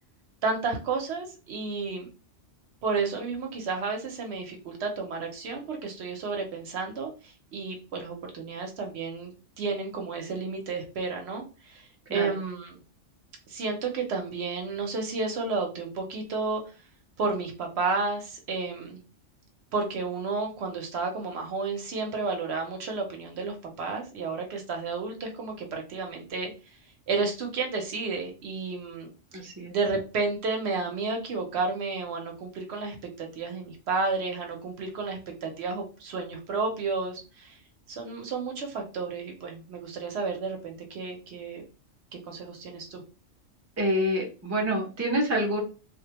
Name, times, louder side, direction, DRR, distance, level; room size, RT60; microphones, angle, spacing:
voice 1, 0.4-2.1 2.8-12.7 13.5-16.6 17.2-19.0 19.7-26.5 27.1-29.1 29.7-37.6 37.9-41.6 42.1-43.0, right 4 dB, 65° right, 3 dB, 0.8 m, -32 dB
voice 2, 29.3-29.7 43.8-45.6, equal, 25° right, 1 dB, 0.3 m, -27 dB
2.4 x 2.1 x 2.8 m, 0.34 s
omnidirectional pair, 1.3 m